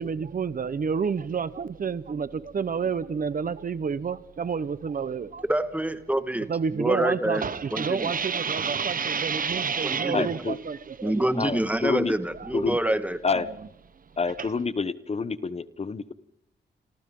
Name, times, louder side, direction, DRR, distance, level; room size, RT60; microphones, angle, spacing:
voice 1, 0.0-5.4 6.5-11.3 12.3-12.5 13.2-13.4 14.4-14.5, right 6 dB, 50° right, 1.1 m, -29 dB
voice 2, 5.5-7.4 7.7-8.1 9.8-10.3 11.0-13.2, right 1 dB, 10° right, 1.7 m, -26 dB
voice 3, 10.1-10.6 11.4-12.1 12.5-12.8 13.2-13.5 14.2-16.1, left 4 dB, 35° left, 0.9 m, -28 dB
28.0 x 27.0 x 3.9 m
wide cardioid pair, 115°, 18 cm